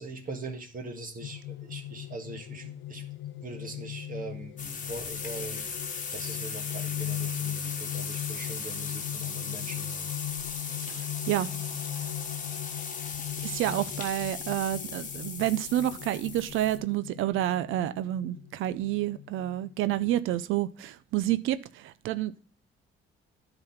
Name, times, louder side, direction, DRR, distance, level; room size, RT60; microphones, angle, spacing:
voice 1, 0.0-3.0 3.4-5.6 6.1-10.1, right 3 dB, 45° right, 1.5 m, -41 dB
sound 1, 1.2-20.4, left 11 dB, 75° left, 0.7 m, -39 dB
sound 2, 4.6-16.8, left 5 dB, 40° left, 1.1 m, -37 dB
voice 2, 10.9-11.5 13.4-22.4, right 13 dB, 85° right, 0.5 m, -29 dB
9.8 x 4.1 x 5.5 m
cardioid pair, 90°, 20 cm